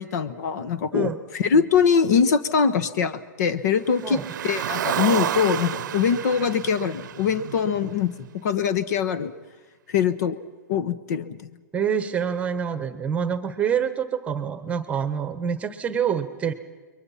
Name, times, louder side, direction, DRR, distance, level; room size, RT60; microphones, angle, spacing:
voice 1, 0.0-8.1 8.4-9.3 9.9-10.4 10.7-11.4, left 6 dB, 60° left, 16 dB, 1.3 m, -23 dB
Car, 3.9-8.3, right 10 dB, 75° right, 0.7 m, -30 dB
voice 2, 11.7-16.5, right 7 dB, 15° right, 11 dB, 1.2 m, -26 dB
28.5 x 22.5 x 5.8 m, 1.3 s
hypercardioid pair, 150°, 10 cm